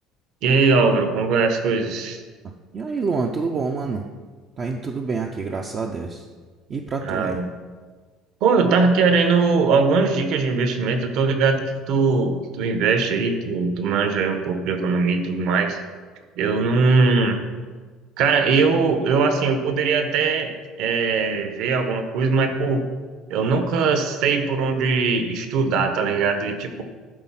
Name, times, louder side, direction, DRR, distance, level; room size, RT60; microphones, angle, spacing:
voice 1, 0.4-2.2 7.0-7.4 8.4-15.8 16.4-17.4 18.2-20.5 20.8-22.8 23.3-26.8, right 4 dB, 50° right, 7 dB, 0.9 m, -20 dB
voice 2, 2.7-4.0 4.6-6.3 6.7-7.4, right 4 dB, 25° right, 3 dB, 0.4 m, -27 dB
12.0 x 4.0 x 5.7 m, 1.4 s
cardioid pair, 180°, 0 cm